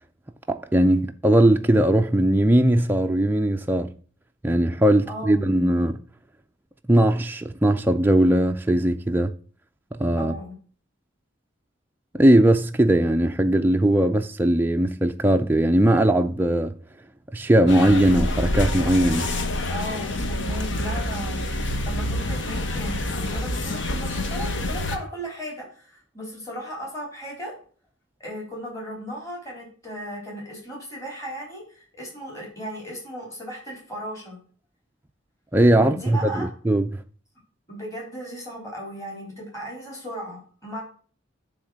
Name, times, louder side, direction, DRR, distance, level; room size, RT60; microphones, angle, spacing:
voice 1, 0.5-3.9 4.4-6.0 6.9-9.3 10.0-10.3 12.1-16.7 17.3-19.3 35.5-36.9, right 1 dB, 10° right, 0.3 m, -19 dB
voice 2, 5.1-5.5 10.2-10.5 19.7-21.4 21.8-27.5 28.2-34.4 35.7-36.5 37.7-40.8, equal, 15° left, 3.5 m, -36 dB
sound 1, 17.7-25.0, left 1 dB, 65° left, 1.1 m, -27 dB
10.0 x 3.6 x 6.2 m
head